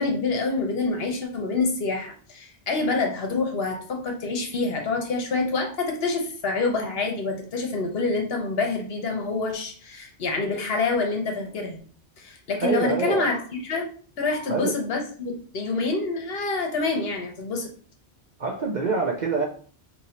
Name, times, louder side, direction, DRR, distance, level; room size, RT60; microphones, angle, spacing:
voice 1, 0.0-11.8 12.2-13.4 13.6-13.9 14.2-17.7, left 3 dB, 60° left, 2 dB, 1.0 m, -27 dB
voice 2, 12.6-13.4 14.5-14.7 18.4-19.5, right 4 dB, 55° right, 1 dB, 0.6 m, -26 dB
2.7 x 2.6 x 4.2 m, 0.43 s
omnidirectional pair, 1.2 m